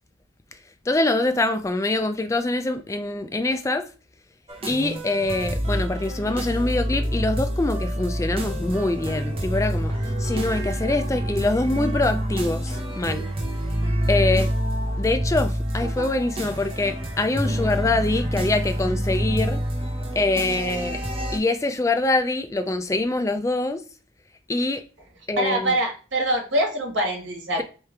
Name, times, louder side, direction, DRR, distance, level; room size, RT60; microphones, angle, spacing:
voice 1, 0.9-3.9 4.7-9.9 10.2-13.3 14.1-14.5 15.0-19.6 20.2-21.0 21.3-23.8 24.5-24.8 25.3-25.7, left 2 dB, 15° left, 0.3 m, -24 dB
sound 1, 4.5-21.4, equal, 30° right, 0.7 m, -27 dB
voice 2, 25.4-27.6, right 1 dB, 75° right, 1.4 m, -24 dB
3.4 x 3.2 x 3.2 m
head